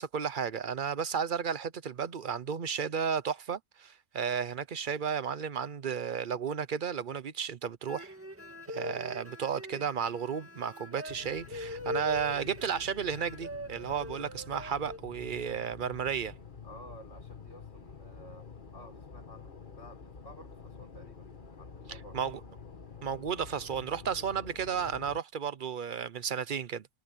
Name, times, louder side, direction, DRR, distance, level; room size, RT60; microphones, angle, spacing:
voice 1, 0.0-8.1 8.7-16.3 21.9-22.4 23.0-26.9, right 7 dB, 45° right, 0.8 m, -33 dB
sound 1, 7.9-15.0, left 1 dB, 10° right, 2.1 m, -42 dB
sound 2, 11.1-25.2, left 5 dB, 35° left, 1.5 m, -49 dB
voice 2, 16.6-22.3, equal, 55° left, 7.0 m, -53 dB
omnidirectional pair, 1.5 m